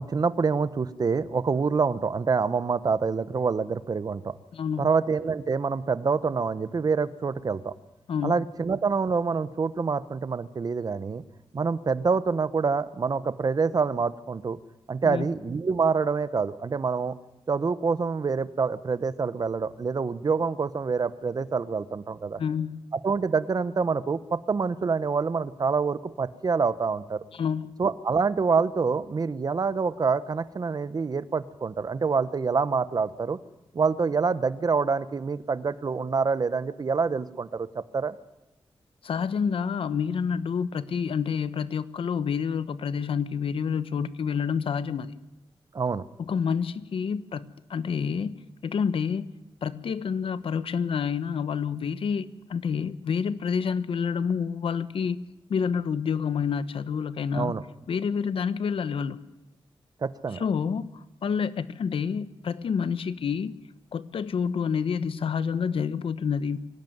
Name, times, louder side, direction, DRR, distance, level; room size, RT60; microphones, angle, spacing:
voice 1, 0.0-4.4 4.8-7.7 8.2-11.2 11.5-14.6 14.9-17.1 17.5-22.4 22.9-27.2 27.8-33.4 33.7-38.1 45.7-46.0 57.3-57.6 60.0-60.4, right 5 dB, 45° right, 14 dB, 1.0 m, -26 dB
voice 2, 4.5-4.9 8.1-8.3 15.0-15.3 22.4-22.8 27.3-27.8 39.0-45.1 46.3-48.3 48.6-49.3 49.6-55.2 55.5-57.5 57.9-59.2 60.3-63.6 63.9-66.6, left 6 dB, 80° left, 14 dB, 1.0 m, -28 dB
24.5 x 17.5 x 9.4 m, 0.99 s
wide cardioid pair, 135°, 9 cm